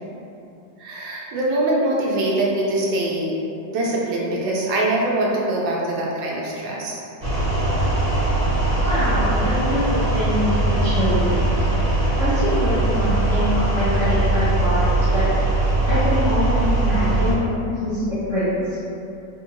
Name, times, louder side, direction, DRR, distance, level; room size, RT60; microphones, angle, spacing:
voice 1, 0.8-3.4 3.7-7.0, right 1 dB, 75° right, -4 dB, 1.2 m, -23 dB
sound 1, 7.2-17.3, right 2 dB, 25° right, 0.9 m, -20 dB
voice 2, 8.8-11.5 12.2-15.3 15.9-17.4 17.7-18.8, left 1 dB, 50° left, -14 dB, 0.8 m, -24 dB
3.5 x 2.7 x 2.5 m, 2.7 s
omnidirectional pair, 2.0 m